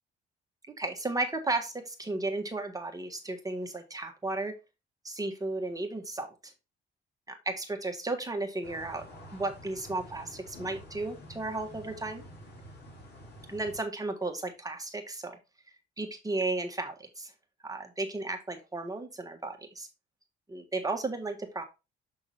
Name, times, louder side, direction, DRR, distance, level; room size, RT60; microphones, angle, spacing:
voice 1, 0.7-4.5 5.0-6.5 7.3-12.2 13.5-15.4 16.0-17.3 17.6-19.9 20.5-21.6, right 2 dB, 15° right, 4 dB, 1.5 m, -34 dB
sound 1, 8.6-13.8, equal, 55° left, 3.4 m, -49 dB
7.5 x 3.7 x 4.1 m, 0.26 s
cardioid pair, 90°, 20 cm